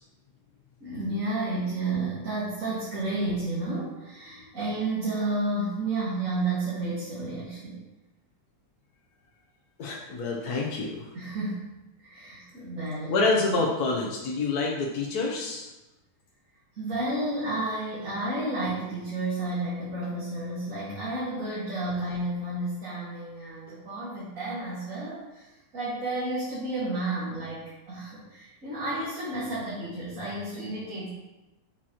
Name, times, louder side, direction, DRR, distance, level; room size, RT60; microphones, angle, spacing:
voice 1, 0.8-7.8 11.1-11.7 12.0-13.2 16.7-31.1, right 2 dB, 50° right, -8 dB, 2.5 m, -31 dB
voice 2, 9.8-11.1 13.1-15.7, left 3 dB, 65° left, -2 dB, 1.6 m, -27 dB
11.5 x 6.4 x 3.0 m, 1.0 s
omnidirectional pair, 1.8 m